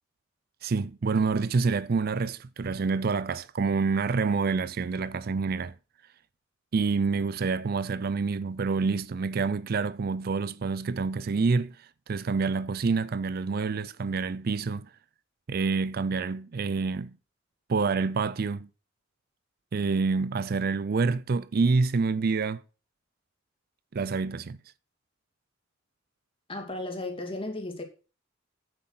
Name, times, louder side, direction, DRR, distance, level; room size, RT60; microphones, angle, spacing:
voice 1, 0.6-5.7 6.7-14.9 15.5-17.1 17.7-18.7 19.7-22.6 23.9-24.6, right 4 dB, 50° right, 0.4 m, -27 dB
voice 2, 26.5-27.8, left 2 dB, 30° left, 2.7 m, -34 dB
9.5 x 7.8 x 6.0 m
head